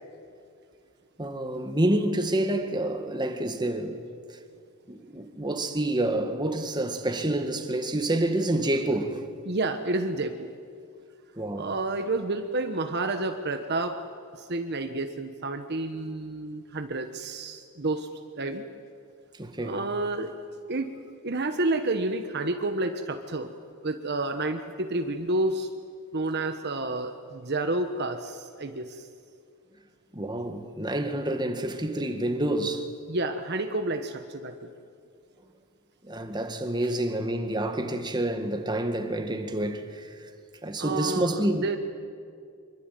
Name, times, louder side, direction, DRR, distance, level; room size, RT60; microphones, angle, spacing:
voice 1, 1.2-4.0 4.3-4.4 4.9-9.3 11.4-11.7 19.4-19.8 30.1-32.9 36.0-40.2 40.6-41.7, right 1 dB, 20° right, 1.9 m, -28 dB
voice 2, 9.4-10.5 11.6-14.0 14.3-18.1 18.4-18.6 19.6-20.3 20.7-21.0 21.2-23.6 23.8-25.7 26.1-29.0 33.1-34.7 40.8-41.8, right 2 dB, 50° right, 1.3 m, -30 dB
25.0 x 23.5 x 9.4 m
head